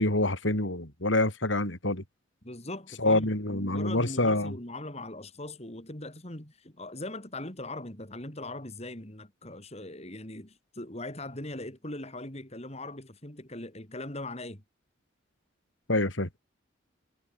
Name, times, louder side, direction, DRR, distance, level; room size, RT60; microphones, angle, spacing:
voice 1, 0.0-2.0 3.0-4.5 15.9-16.3, left 2 dB, 75° left, 5.4 m, -26 dB
voice 2, 2.4-14.6, left 2 dB, 35° left, 3.9 m, -40 dB
head